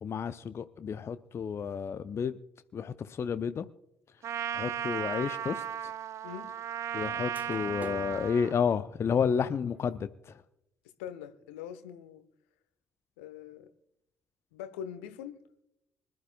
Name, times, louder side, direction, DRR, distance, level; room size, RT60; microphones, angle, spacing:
voice 1, 0.0-2.4 2.7-3.7 4.5-5.6 6.9-10.4, left 7 dB, 40° left, 0.6 m, -31 dB
Trumpet, 4.2-8.6, right 10 dB, 45° right, 0.4 m, -35 dB
sound 1, 7.0-7.1 7.3-10.1, right 3 dB, 25° right, 1.5 m, -49 dB
voice 2, 11.0-12.2 13.2-13.7 14.5-15.4, left 9 dB, 70° left, 1.0 m, -42 dB
25.0 x 11.5 x 2.3 m
figure-of-eight pair, 45°, 7 cm